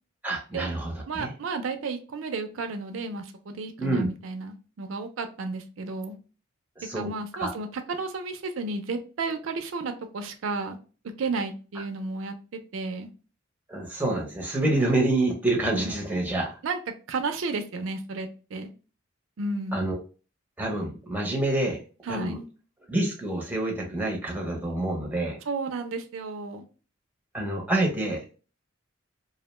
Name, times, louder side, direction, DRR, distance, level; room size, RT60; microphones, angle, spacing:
voice 1, 0.2-1.3 3.8-4.1 6.8-7.1 7.4-7.5 13.7-16.5 19.7-20.0 20.6-21.8 22.1-22.4 22.9-25.4 27.3-28.3, right 2 dB, 10° right, 0 dB, 0.6 m, -27 dB
voice 2, 1.1-6.2 6.9-10.8 11.2-13.1 16.6-16.8 17.1-18.7 19.4-19.9 22.0-22.5 25.5-26.6, right 3 dB, 80° right, 7 dB, 0.4 m, -32 dB
2.4 x 2.1 x 3.0 m, 0.35 s
head